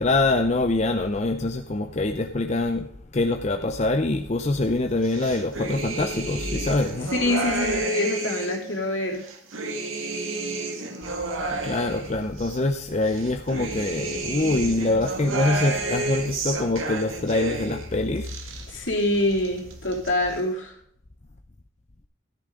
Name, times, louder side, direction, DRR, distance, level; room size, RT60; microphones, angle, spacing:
voice 1, 0.0-2.9 3.1-7.1 11.5-18.3, left 2 dB, 35° left, 5 dB, 0.6 m, -24 dB
sound 1, 5.0-8.7 9.1-12.6 13.0-17.9 18.2-19.0 19.3-20.1, right 2 dB, 80° right, 1.9 m, -31 dB
voice 2, 7.1-9.2 18.7-20.7, left 1 dB, 70° left, 0 dB, 3.2 m, -25 dB
13.0 x 10.5 x 3.8 m, 0.68 s
head